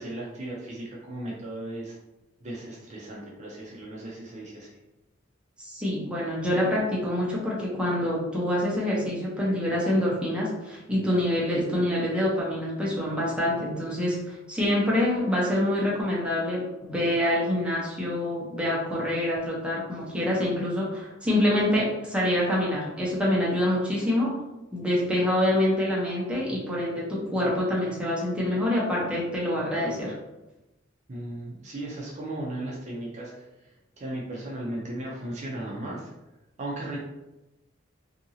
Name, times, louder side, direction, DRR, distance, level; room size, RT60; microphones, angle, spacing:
voice 1, 0.0-1.9 2.4-4.7 31.1-33.3 34.0-36.1 36.6-37.0, right 1 dB, 35° right, -4 dB, 0.5 m, -36 dB
voice 2, 5.6-24.3 24.7-30.1, left 1 dB, 5° right, -6 dB, 0.7 m, -26 dB
2.7 x 2.6 x 2.7 m, 0.99 s
head